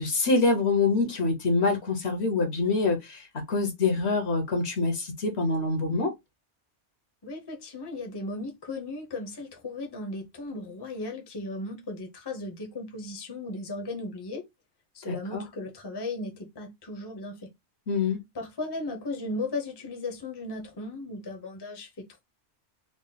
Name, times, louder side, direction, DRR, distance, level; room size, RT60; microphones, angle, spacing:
voice 1, 0.0-6.1 15.1-15.5 17.9-18.2, left 3 dB, 65° left, 1.3 m, -25 dB
voice 2, 7.2-14.4 14.9-17.5 18.3-22.2, left 2 dB, 25° left, 0.8 m, -36 dB
3.8 x 2.0 x 3.9 m
omnidirectional pair, 1.2 m